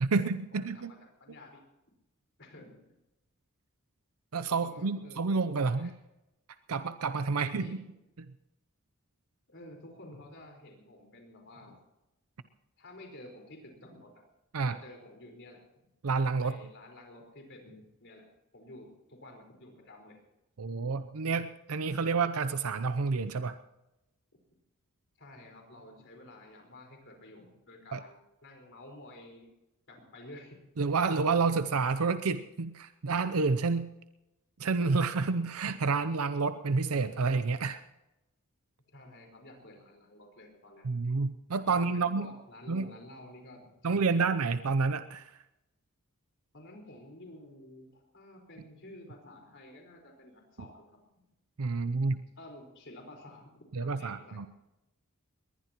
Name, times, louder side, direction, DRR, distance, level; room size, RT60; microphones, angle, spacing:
voice 1, 0.0-0.9 4.3-5.9 6.7-7.8 8.2-8.3 14.5-14.8 16.0-16.6 20.6-23.6 27.9-28.0 30.8-33.9 34.6-37.8 40.8-42.3 42.7-42.9 43.8-45.3 51.6-52.2 53.7-54.5, right 4 dB, 80° right, 11 dB, 0.6 m, -29 dB
voice 2, 0.6-1.6 2.4-2.8 4.5-5.9 7.3-7.8 9.5-11.8 12.8-14.2 14.7-15.6 16.4-18.2 18.5-20.2 25.2-29.5 29.9-30.6 38.9-40.9 41.9-44.3 46.5-51.0 52.4-54.5, left 1 dB, 55° left, 1 dB, 4.6 m, -51 dB
21.5 x 19.5 x 3.0 m, 0.93 s
head